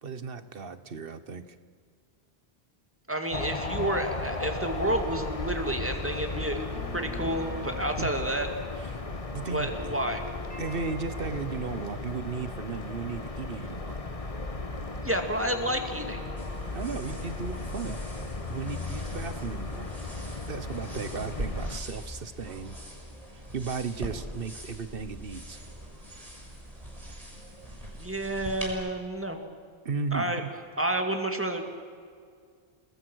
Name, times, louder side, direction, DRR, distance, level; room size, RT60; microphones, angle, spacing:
voice 1, 0.0-1.6 8.0-8.1 8.9-9.0 9.3-9.7 10.6-14.0 16.7-18.0 18.5-19.9 20.5-22.8 23.5-25.6 29.8-30.5, right 5 dB, 65° right, 12 dB, 1.3 m, -35 dB
voice 2, 3.1-6.6 6.9-8.5 9.5-10.2 15.0-16.2 27.9-29.4 30.1-30.4 30.8-31.6, right 1 dB, 10° right, 5 dB, 2.3 m, -30 dB
sound 1, 3.3-21.8, left 3 dB, 35° left, 1.4 m, -36 dB
sound 2, 6.7-14.8 15.1-20.0, left 2 dB, 50° left, 4.0 m, -48 dB
sound 3, 16.4-28.7, equal, 35° right, 6.7 m, -42 dB
30.0 x 20.0 x 6.3 m, 2.2 s
omnidirectional pair, 1.0 m